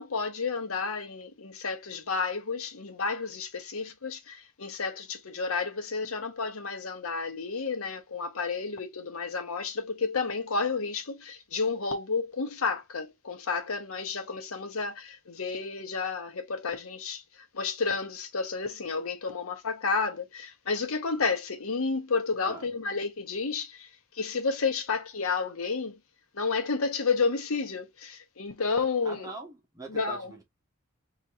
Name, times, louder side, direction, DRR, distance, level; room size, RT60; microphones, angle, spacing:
voice 1, 0.0-26.0 26.3-29.3 29.9-30.3, left 4 dB, 75° left, 0.9 m, -31 dB
voice 2, 29.0-30.4, right 3 dB, 15° right, 1.4 m, -42 dB
4.0 x 3.0 x 2.5 m
head